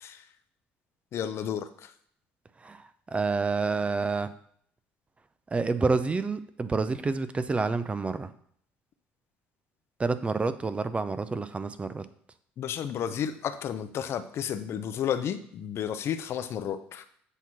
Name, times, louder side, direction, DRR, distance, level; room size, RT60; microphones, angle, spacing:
voice 1, 1.1-1.9 12.6-17.0, left 9 dB, 55° left, 10 dB, 0.6 m, -32 dB
voice 2, 2.6-4.3 5.5-8.3 10.0-12.1, right 4 dB, 25° right, 12 dB, 0.5 m, -28 dB
8.2 x 3.0 x 5.8 m, 0.63 s
hypercardioid pair, 70°, 5 cm